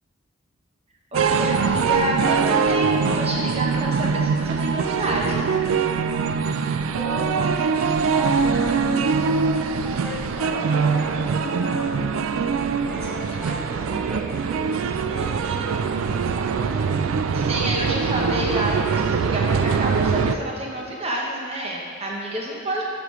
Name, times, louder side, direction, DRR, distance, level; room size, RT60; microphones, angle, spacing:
voice 1, 1.1-5.6 13.3-13.9 15.1-15.8 17.3-22.8, right 1 dB, 30° right, -2 dB, 0.8 m, -29 dB
sound 1, 1.1-20.4, right 5 dB, 80° right, 0.3 m, -23 dB
voice 2, 6.9-12.0 12.9-17.2, left 1 dB, ahead, -4 dB, 0.9 m, -37 dB
11.5 x 5.1 x 3.1 m, 2.2 s
head